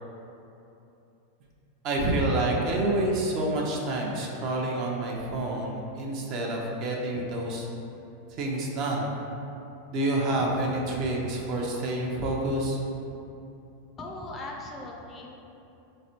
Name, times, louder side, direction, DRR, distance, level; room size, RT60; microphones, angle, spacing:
voice 1, 1.8-7.7 8.3-9.1 9.9-12.8, right 1 dB, 50° right, -1 dB, 0.6 m, -28 dB
voice 2, 14.0-15.4, left 2 dB, 25° left, 0 dB, 0.5 m, -39 dB
4.2 x 3.2 x 2.8 m, 2.8 s
hypercardioid pair, 120°, 0 cm